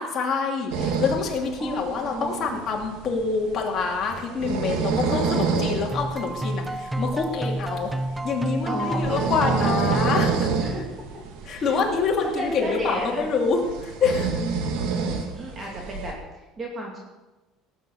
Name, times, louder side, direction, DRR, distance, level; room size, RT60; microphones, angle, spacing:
voice 1, 0.0-7.9 8.2-10.5 11.5-14.3, left 4 dB, 35° left, 0 dB, 2.8 m, -26 dB
sound 1, 0.7-16.1, right 5 dB, 80° right, 2.0 m, -29 dB
voice 2, 1.6-2.6 8.7-9.2 10.6-11.8 12.2-13.3 14.9-17.0, right 1 dB, 25° right, -1 dB, 2.3 m, -34 dB
sound 2, 5.9-11.1, right 1 dB, 5° right, 0.4 m, -30 dB
18.5 x 7.6 x 6.7 m, 1.1 s
cardioid pair, 145°, 0 cm